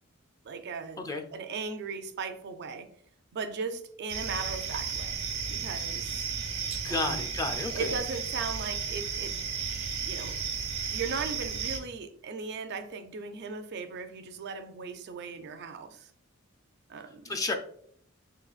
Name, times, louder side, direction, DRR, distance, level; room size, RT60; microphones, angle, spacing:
voice 1, 0.4-1.0 1.3-2.9 3.3-5.2 5.5-6.2 6.9-7.3 7.7-9.4 10.1-10.4 10.9-16.1 16.9-17.3, right 5 dB, 55° right, 0.4 m, -37 dB
sound 1, 4.1-11.8, right 6 dB, 90° right, 0.9 m, -34 dB
voice 2, 6.8-8.0 17.2-17.5, left 3 dB, 15° left, 0.4 m, -31 dB
3.9 x 3.7 x 2.3 m
head